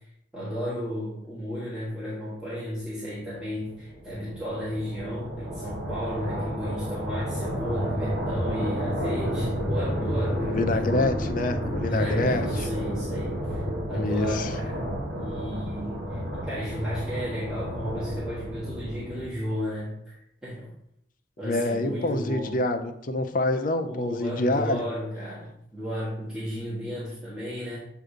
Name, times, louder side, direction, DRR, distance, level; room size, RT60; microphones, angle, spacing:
voice 1, 0.3-10.6 11.9-14.8 15.2-20.1 20.4-20.7 21.4-22.6 23.8-27.8, equal, 5° right, -10 dB, 1.5 m, -34 dB
sound 1, 3.2-19.5, equal, 60° right, 1.6 m, -31 dB
voice 2, 10.4-12.7 13.9-14.5 21.4-24.9, left 2 dB, 50° left, 7 dB, 0.6 m, -27 dB
7.9 x 2.7 x 5.1 m, 0.75 s
head